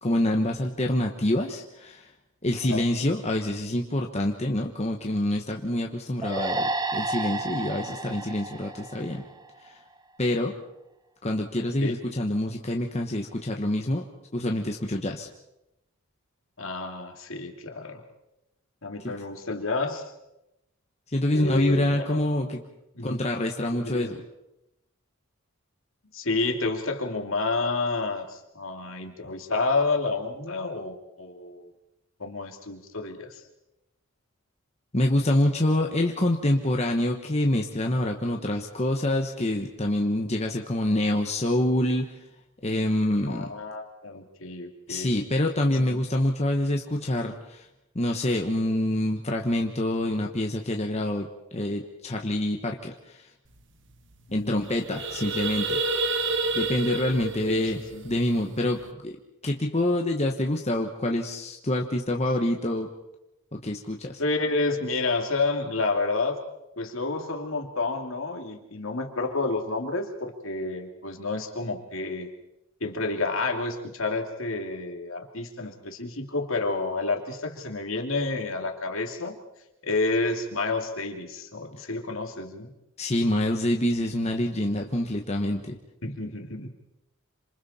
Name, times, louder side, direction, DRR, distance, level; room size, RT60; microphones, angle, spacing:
voice 1, 0.0-2.1 2.4-9.3 9.6-9.8 10.2-10.6 11.2-14.1 14.3-15.3 19.0-19.1 21.1-22.6 23.0-24.2 34.9-42.2 42.6-43.5 44.9-47.7 47.9-53.3 54.3-55.8 56.5-59.2 59.4-62.9 63.5-64.2 83.0-85.8, left 1 dB, 30° left, 2 dB, 1.2 m, -26 dB
sound 1, 6.2-9.7, right 2 dB, 20° right, 0.8 m, -31 dB
voice 2, 16.6-18.0 18.8-20.1 21.3-22.2 22.9-23.2 23.8-24.1 26.1-31.7 32.2-33.4 43.3-45.1 45.7-46.0 54.3-54.7 55.2-55.3 57.5-57.6 57.9-58.0 64.2-66.4 66.8-72.3 72.8-79.4 79.8-82.7 86.0-86.7, left 3 dB, 65° left, 3 dB, 2.7 m, -30 dB
sound 2, 53.6-53.7 53.9-54.1 54.5-58.8, right 3 dB, 55° right, 1.6 m, -30 dB
27.5 x 26.5 x 4.3 m, 0.89 s
head